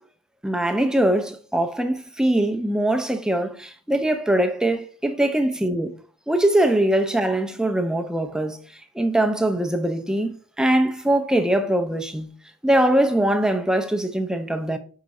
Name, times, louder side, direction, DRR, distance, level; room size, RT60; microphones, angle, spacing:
voice 1, 0.4-5.9 6.3-8.6 9.0-12.3 12.6-14.8, right 1 dB, 5° right, 0.5 m, -22 dB
5.0 x 4.7 x 4.2 m
head